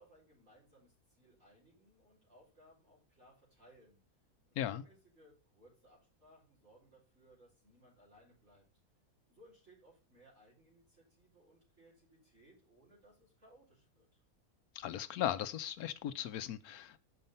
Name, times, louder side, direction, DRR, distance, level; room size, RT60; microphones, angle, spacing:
voice 1, 0.0-4.0 4.5-8.7 9.3-14.2, right 1 dB, 50° right, 4.9 m, -64 dB
voice 2, 14.7-17.0, left 11 dB, 80° left, 1.1 m, -37 dB
6.6 x 5.3 x 5.5 m
omnidirectional pair, 1.6 m